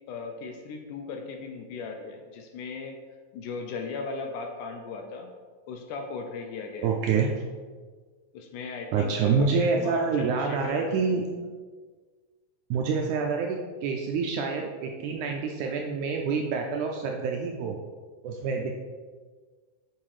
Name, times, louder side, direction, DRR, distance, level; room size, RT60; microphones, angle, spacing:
voice 1, 0.1-3.0 3.3-5.3 5.7-6.9 8.3-11.0, left 4 dB, 75° left, 4 dB, 2.1 m, -37 dB
voice 2, 6.8-7.3 8.9-11.3 12.7-17.8 18.2-18.7, right 5 dB, 80° right, 1 dB, 1.8 m, -27 dB
7.4 x 6.0 x 4.9 m, 1.5 s
omnidirectional pair, 4.0 m